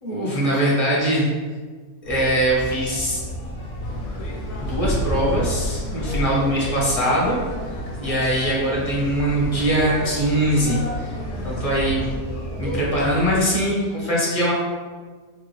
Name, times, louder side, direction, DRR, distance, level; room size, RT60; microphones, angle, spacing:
voice 1, 0.0-1.3 2.1-3.2 4.6-7.4 8.0-11.1 11.4-12.1 12.6-14.5, right 1 dB, 30° left, -5 dB, 0.8 m, -22 dB
sound 1, 2.0-13.4, equal, 50° left, 0.4 m, -33 dB
sound 2, 3.8-12.2, left 1 dB, 80° left, 1.2 m, -31 dB
5.3 x 2.3 x 3.1 m, 1.5 s
omnidirectional pair, 1.6 m